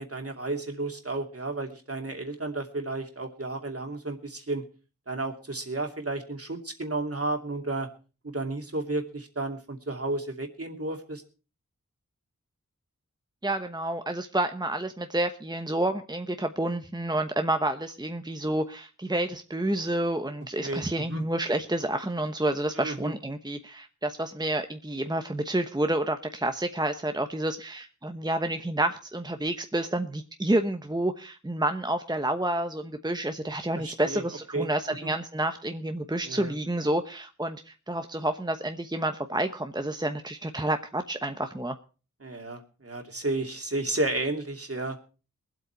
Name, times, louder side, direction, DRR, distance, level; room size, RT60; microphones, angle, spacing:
voice 1, 0.0-4.6 5.1-7.9 8.2-11.2 20.6-21.2 22.7-23.1 33.8-34.2 34.5-34.7 35.0-35.1 36.2-36.5 42.2-45.0, right 2 dB, 50° right, 4 dB, 2.8 m, -32 dB
voice 2, 13.4-41.8, right 1 dB, 15° right, 7 dB, 1.1 m, -29 dB
22.0 x 8.2 x 4.6 m, 0.36 s
wide cardioid pair, 50°, 31 cm